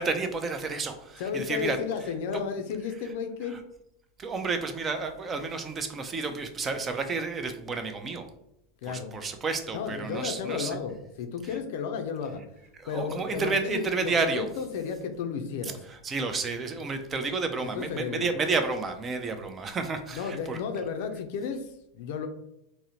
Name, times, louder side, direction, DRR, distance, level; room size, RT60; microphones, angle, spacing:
voice 1, 0.0-1.8 2.3-2.4 4.2-8.3 8.9-10.8 12.8-14.5 15.9-20.6, right 4 dB, 25° right, 7 dB, 0.4 m, -31 dB
voice 2, 1.2-3.6 8.8-9.2 9.7-12.4 12.8-15.8 17.6-18.4 20.1-22.3, left 6 dB, 65° left, 6 dB, 0.4 m, -33 dB
3.6 x 2.0 x 2.8 m, 0.84 s
hypercardioid pair, 90°, 0 cm